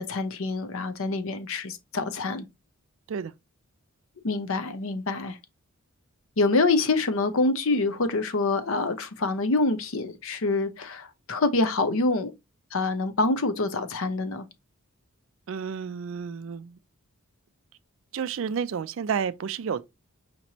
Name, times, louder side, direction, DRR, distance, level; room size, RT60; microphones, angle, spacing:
voice 1, 0.0-2.4 4.2-5.4 6.4-12.3 12.7-14.4, left 3 dB, 65° left, 0.6 m, -26 dB
voice 2, 15.5-16.8 18.1-19.8, right 7 dB, 60° right, 0.3 m, -31 dB
5.1 x 3.0 x 2.7 m
head